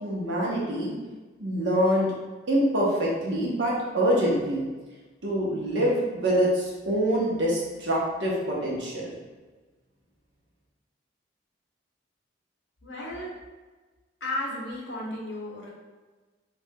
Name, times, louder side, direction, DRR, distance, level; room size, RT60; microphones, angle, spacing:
voice 1, 0.0-0.9 1.4-2.1 2.5-4.6 5.2-9.1, equal, 75° right, -4 dB, 0.9 m, -25 dB
voice 2, 12.8-13.3 14.2-15.7, left 1 dB, 75° left, -3 dB, 0.8 m, -34 dB
3.2 x 3.0 x 2.2 m, 1.3 s
head